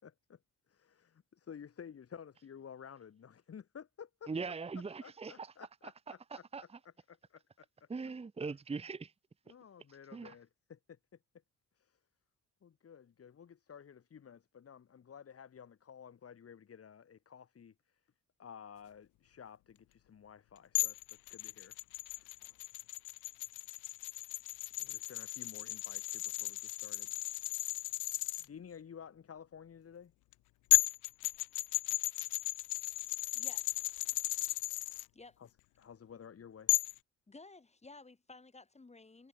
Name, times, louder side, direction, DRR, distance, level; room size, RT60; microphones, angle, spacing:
voice 1, 0.0-0.4 0.7-4.3 5.0-6.4 7.1-7.9 9.5-11.0 11.7-12.0 12.6-18.0 18.4-21.8 22.2-22.4 24.8-27.1 28.4-30.1 35.4-35.5 35.8-36.7, left 7 dB, 50° left, 6.5 m, -53 dB
voice 2, 4.3-5.5 6.1-6.6 7.9-9.1 10.1-10.3, right 4 dB, 20° right, 1.0 m, -41 dB
sound 1, 20.7-28.4 30.3-30.4 30.7-35.0 36.7-37.0, left 20 dB, 90° left, 0.5 m, -35 dB
voice 3, 33.3-33.9 35.1-35.4 37.3-39.3, left 3 dB, 20° left, 4.1 m, -55 dB
cardioid pair, 90°, 30 cm